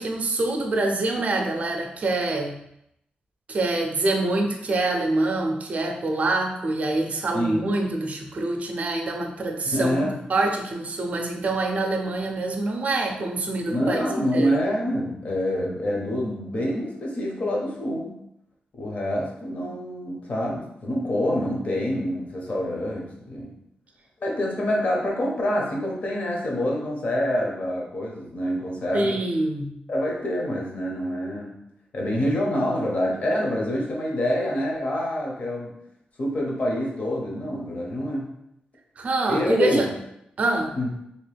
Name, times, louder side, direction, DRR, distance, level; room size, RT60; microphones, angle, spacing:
voice 1, 0.0-2.6 3.5-14.1 14.3-14.5 28.9-29.7 39.0-39.9 40.4-40.7, right 2 dB, 45° right, 3 dB, 0.5 m, -25 dB
voice 2, 7.3-7.7 9.7-10.1 13.7-18.2 18.7-23.6 24.2-29.2 29.9-31.6 31.9-35.7 36.2-38.3 39.3-39.9 40.7-40.9, equal, 45° left, -2 dB, 0.9 m, -26 dB
3.1 x 2.9 x 3.3 m, 0.78 s
wide cardioid pair, 150°, 3 cm